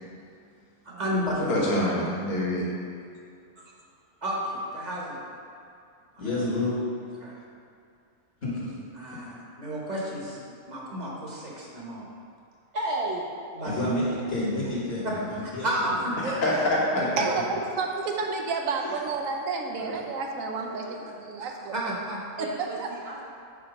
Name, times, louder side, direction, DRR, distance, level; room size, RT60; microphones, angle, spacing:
voice 1, 0.8-1.7 4.2-5.3 6.2-6.4 7.2-7.4 9.0-12.0 13.5-13.7 15.4-16.4 16.9-17.4 20.8-21.0 21.4-22.2, equal, 35° right, -4 dB, 1.1 m, -32 dB
voice 2, 1.5-2.7 16.2-17.0 19.8-20.0, left 1 dB, 80° left, -5 dB, 1.6 m, -26 dB
voice 3, 6.2-6.8 8.4-8.7 13.6-15.9 17.0-17.1 17.4-17.5, left 1 dB, 50° left, -7 dB, 1.3 m, -29 dB
voice 4, 12.7-13.3 13.6-14.2 14.6-14.7 22.4-23.2, right 1 dB, 60° right, -3 dB, 0.8 m, -34 dB
voice 5, 17.2-22.0 22.4-22.9, right 4 dB, 85° right, 2 dB, 1.1 m, -31 dB
4.9 x 4.5 x 5.2 m, 2.4 s
omnidirectional pair, 1.4 m